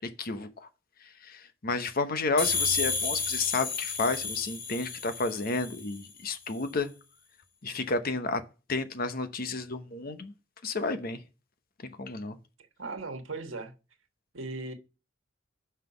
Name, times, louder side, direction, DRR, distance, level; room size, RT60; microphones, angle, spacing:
voice 1, 0.2-0.7 1.2-6.9 7.6-8.4 8.7-10.3 10.6-11.2 12.0-12.4, left 3 dB, 45° left, 0.9 m, -31 dB
sound 1, 2.4-6.0, left 4 dB, 65° left, 2.6 m, -32 dB
voice 2, 12.8-13.7 14.3-14.7, right 3 dB, 75° right, 1.4 m, -37 dB
5.8 x 5.7 x 6.9 m
head